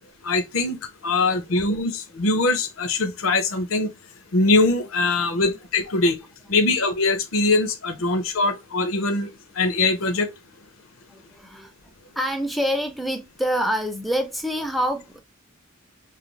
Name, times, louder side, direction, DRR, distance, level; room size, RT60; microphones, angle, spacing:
voice 1, 0.2-0.8 1.0-3.9 4.3-6.2 6.5-9.3 9.6-10.3, left 2 dB, 85° left, 0.6 m, -22 dB
voice 2, 11.1-15.2, equal, ahead, 0.3 m, -27 dB
2.4 x 2.3 x 3.1 m
head